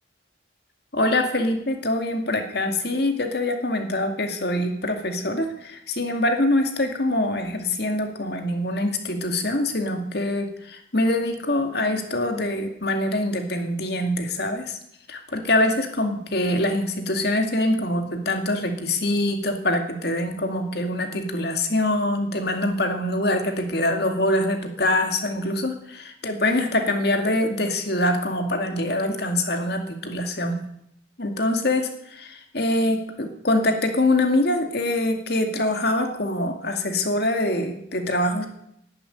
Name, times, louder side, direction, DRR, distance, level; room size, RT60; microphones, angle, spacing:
voice 1, 0.9-14.8 15.1-25.8 26.2-30.6 31.2-38.5, left 1 dB, 55° left, 5 dB, 2.3 m, -24 dB
11.0 x 10.5 x 9.9 m, 0.74 s
head